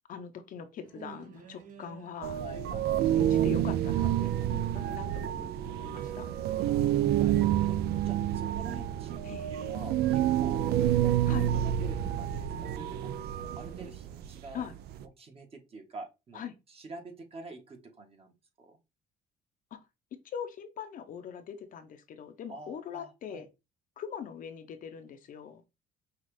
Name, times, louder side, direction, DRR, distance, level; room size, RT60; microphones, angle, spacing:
voice 1, 0.1-2.4 3.1-6.3 9.2-9.5 11.3-11.5 14.5-14.8 16.3-16.5 19.7-19.8 20.2-23.5 24.0-25.6, left 7 dB, 55° left, 0.7 m, -42 dB
sound 1, 0.8-7.8, right 6 dB, 50° right, 1.0 m, -52 dB
sound 2, 2.2-15.0, right 11 dB, 70° right, 0.4 m, -28 dB
voice 2, 2.4-2.9 6.6-13.1 13.5-14.6 15.2-16.4 16.7-18.3 18.6-18.8 22.5-23.4, right 3 dB, 35° right, 1.2 m, -47 dB
5.7 x 2.4 x 3.2 m
cardioid pair, 110°, 17 cm